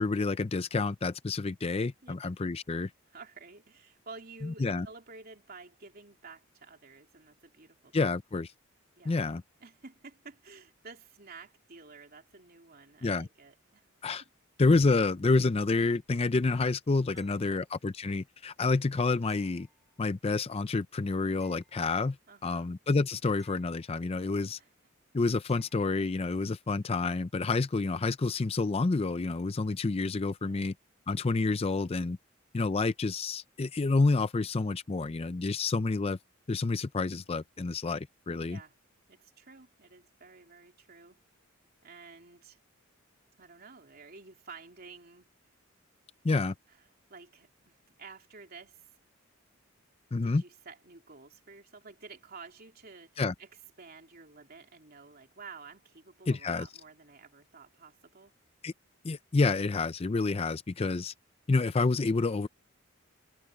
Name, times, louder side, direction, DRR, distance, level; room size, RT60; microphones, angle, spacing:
voice 1, 0.0-2.9 4.4-4.9 7.9-8.5 9.1-9.4 13.0-13.3 14.0-14.2 14.6-19.7 20.0-22.2 22.4-24.6 25.1-30.7 31.1-32.2 32.5-36.2 36.5-38.6 46.2-46.5 50.1-50.4 53.2-53.3 56.3-56.7 58.6-58.7 59.0-61.1 61.5-62.5, left 3 dB, 30° left, 0.4 m, -28 dB
voice 2, 3.1-7.9 9.0-9.2 9.6-13.8 14.2-14.3 17.1-17.6 22.3-22.7 24.6-24.7 30.4-30.7 38.5-38.7 39.1-41.2 41.8-42.6 43.4-45.3 46.7-46.8 47.1-48.9 50.2-53.5 53.8-58.3, right 4 dB, 45° right, 3.4 m, -51 dB
sound 1, 17.2-17.9 19.3-20.4 21.4-22.4 23.4-24.4 25.5-26.1 28.9-29.0, equal, ahead, 5.7 m, -66 dB
head